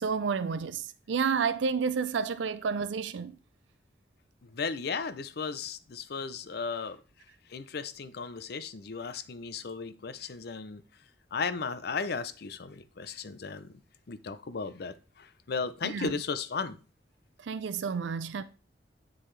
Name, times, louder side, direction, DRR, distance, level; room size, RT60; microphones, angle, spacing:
voice 1, 0.0-3.3 15.8-16.2 17.4-18.4, right 5 dB, 85° right, 0.4 m, -30 dB
voice 2, 4.4-7.0 7.5-10.8 11.3-13.7 14.1-16.8, left 5 dB, 60° left, 0.5 m, -35 dB
10.0 x 3.9 x 3.2 m
head